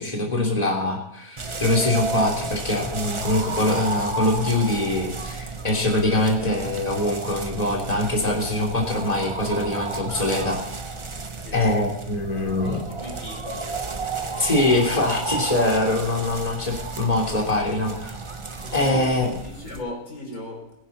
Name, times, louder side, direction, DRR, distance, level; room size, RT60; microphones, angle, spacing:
voice 1, 0.0-10.6 11.5-12.8 14.4-18.1 18.7-19.3, left 2 dB, 25° left, 3.3 m, -23 dB
sound 1, 1.4-19.8, right 3 dB, 25° right, 0.9 m, -32 dB
voice 2, 11.4-11.7 12.6-13.8 18.6-20.7, left 1 dB, 80° left, 4.7 m, -37 dB
21.0 x 10.5 x 4.2 m
omnidirectional pair, 1.5 m